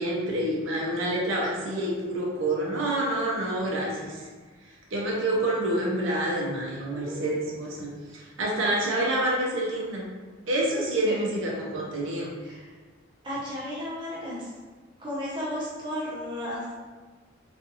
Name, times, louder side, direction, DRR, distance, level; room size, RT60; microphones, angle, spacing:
voice 1, 0.0-4.2 4.9-10.1 10.5-12.3, right 1 dB, 85° right, -3 dB, 0.6 m, -27 dB
voice 2, 6.9-7.5 7.8-8.0 11.1-11.2 12.4-12.7 13.2-14.5 15.0-16.7, left 1 dB, 25° right, -7 dB, 0.7 m, -34 dB
2.5 x 2.4 x 2.7 m, 1.3 s
head